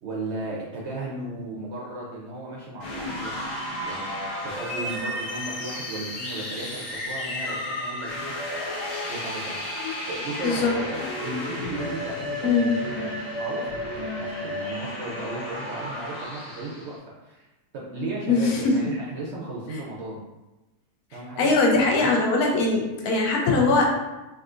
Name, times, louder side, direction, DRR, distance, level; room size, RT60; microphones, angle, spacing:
voice 1, 0.0-3.4 3.8-8.3 9.0-9.6 10.1-17.5 17.7-20.2 21.1-21.5 22.0-22.1, right 2 dB, 65° right, -4 dB, 0.7 m, -35 dB
sound 1, 2.8-16.9, left 1 dB, 60° left, 1.5 m, -32 dB
voice 2, 18.3-18.7 21.4-23.9, left 3 dB, 80° left, -1 dB, 1.1 m, -21 dB
3.6 x 2.7 x 2.4 m, 1.0 s
omnidirectional pair, 1.6 m